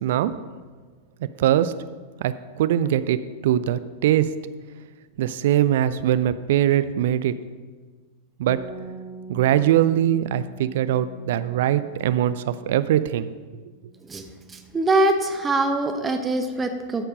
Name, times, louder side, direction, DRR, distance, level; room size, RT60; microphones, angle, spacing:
voice 1, 0.0-0.3 1.4-1.7 2.2-4.3 5.2-7.4 8.4-8.7 9.3-13.3, right 11 dB, 55° right, 14 dB, 0.4 m, -22 dB
Bass guitar, 8.5-14.7, right 3 dB, 15° left, 1.5 m, -44 dB
voice 2, 14.0-17.1, right 2 dB, 15° right, 6 dB, 0.8 m, -23 dB
13.5 x 4.5 x 5.2 m, 1.5 s
figure-of-eight pair, 90°, 0 cm